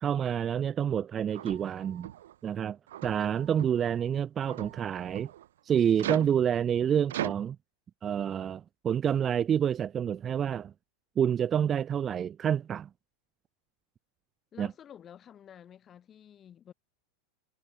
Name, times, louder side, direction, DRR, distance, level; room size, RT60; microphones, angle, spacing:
voice 1, 0.0-2.1 2.4-5.3 5.7-7.6 8.0-10.7 11.2-12.9 14.6-14.7, right 9 dB, 25° right, 0.7 m, -28 dB
sound 1, 1.3-2.3 2.9-3.9 4.4-5.5 6.0-6.3 7.1-7.3, right 12 dB, 85° right, 0.5 m, -38 dB
voice 2, 14.5-16.7, left 9 dB, 25° left, 2.7 m, -50 dB
supercardioid pair, 140°, 0 cm